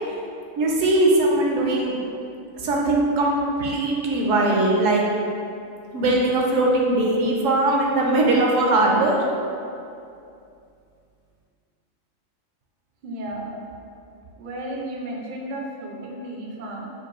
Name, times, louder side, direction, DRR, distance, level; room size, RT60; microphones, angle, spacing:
voice 1, 0.6-1.9 2.6-3.3 3.6-5.0 5.9-9.2, right 2 dB, 75° right, -2 dB, 0.9 m, -20 dB
voice 2, 13.0-13.6 14.4-16.9, right 1 dB, 60° right, -2 dB, 0.5 m, -33 dB
5.0 x 2.3 x 3.0 m, 2.5 s
omnidirectional pair, 1.4 m